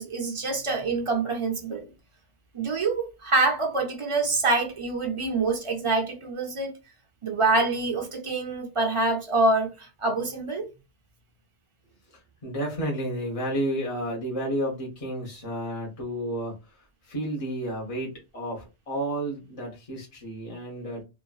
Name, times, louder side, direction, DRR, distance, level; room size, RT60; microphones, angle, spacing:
voice 1, 0.0-1.9 2.5-6.7 7.2-10.7, right 3 dB, 40° right, 0.5 m, -26 dB
voice 2, 12.1-21.0, right 1 dB, 35° left, 0.8 m, -32 dB
2.9 x 2.3 x 2.3 m
omnidirectional pair, 1.1 m